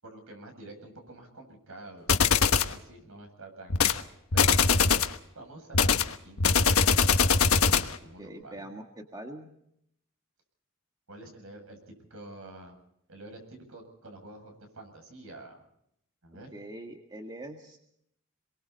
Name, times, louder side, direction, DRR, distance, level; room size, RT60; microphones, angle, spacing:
voice 1, 0.0-4.6 4.9-5.0 5.3-5.9 6.2-8.7 11.1-12.8 13.1-15.6 16.2-16.5, right 2 dB, 70° right, 5 dB, 7.7 m, -48 dB
sound 1, 2.1-2.7 3.7-4.0 4.3-5.2 5.7-8.0, left 5 dB, 75° left, 1.3 m, -22 dB
voice 2, 8.2-9.5 16.5-17.8, right 1 dB, 20° right, 2 dB, 1.9 m, -43 dB
28.0 x 23.0 x 4.2 m, 0.73 s
head